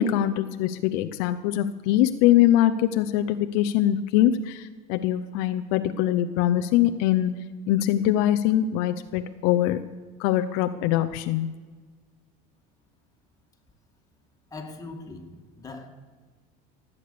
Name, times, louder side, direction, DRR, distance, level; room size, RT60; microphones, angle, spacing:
voice 1, 0.0-7.3 7.7-9.8 10.2-11.5, left 12 dB, 75° left, 9 dB, 0.6 m, -23 dB
voice 2, 14.5-15.9, left 3 dB, 20° left, 2 dB, 2.1 m, -40 dB
18.5 x 8.5 x 6.8 m, 1.4 s
supercardioid pair, 125°, 19 cm